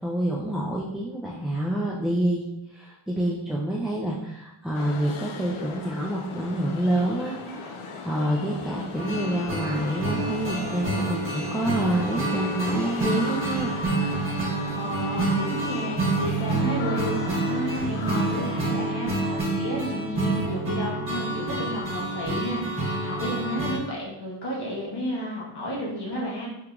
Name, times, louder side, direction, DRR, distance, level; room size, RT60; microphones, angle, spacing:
voice 1, 0.0-2.4 2.7-7.7 8.0-13.7 14.0-14.2, right 1 dB, ahead, -5 dB, 0.3 m, -27 dB
sound 1, 4.7-18.5, left 4 dB, 75° left, 0.6 m, -38 dB
sound 2, 9.0-23.8, right 2 dB, 25° right, 1.3 m, -28 dB
voice 2, 14.7-26.5, equal, 55° left, -4 dB, 1.3 m, -32 dB
3.5 x 2.8 x 2.4 m, 0.91 s
cardioid pair, 60°, 50 cm